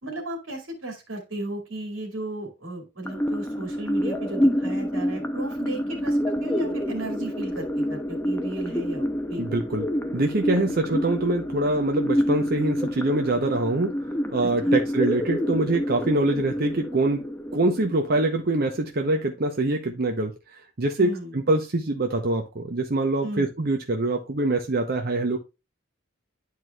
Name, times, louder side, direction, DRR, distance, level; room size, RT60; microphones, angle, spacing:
voice 1, 0.0-9.4 10.6-10.7 14.6-14.8 21.0-21.4 23.2-23.5, right 2 dB, 85° right, 2.4 m, -35 dB
sound 1, 3.0-19.0, equal, 10° left, 0.6 m, -28 dB
voice 2, 9.4-9.9 10.1-13.9 14.3-17.2 17.5-20.3 20.8-25.4, right 2 dB, 50° right, 0.8 m, -24 dB
11.0 x 4.7 x 2.3 m
head